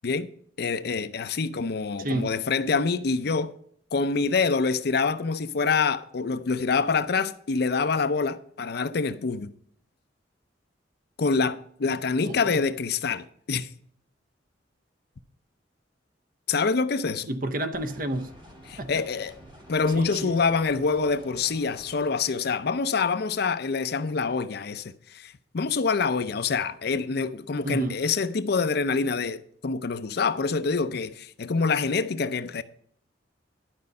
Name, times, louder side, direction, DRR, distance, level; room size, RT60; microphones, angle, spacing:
voice 1, 0.6-3.5 3.9-9.5 11.2-13.7 16.5-17.3 18.7-19.3 19.7-32.6, left 4 dB, 60° left, 0.6 m, -26 dB
voice 2, 2.0-2.3 12.2-12.6 17.3-18.3 18.8-18.9 19.9-20.4 27.6-28.0, right 1 dB, 50° right, 0.8 m, -30 dB
sound 1, 17.7-22.1, equal, 30° right, 3.0 m, -49 dB
12.0 x 5.2 x 5.4 m
head